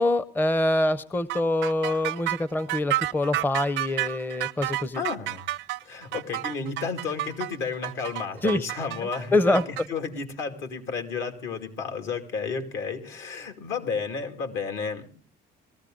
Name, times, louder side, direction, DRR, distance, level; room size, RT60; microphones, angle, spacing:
voice 1, 0.0-5.0 8.4-8.7 9.3-9.6, left 2 dB, 10° left, 16 dB, 0.6 m, -25 dB
sound 1, 1.3-9.9, right 15 dB, 70° right, 0.6 m, -30 dB
voice 2, 5.0-5.5 5.8-9.6 9.9-15.1, left 5 dB, 70° left, 6 dB, 2.4 m, -32 dB
19.5 x 14.5 x 3.8 m, 0.42 s
supercardioid pair, 95°, 20 cm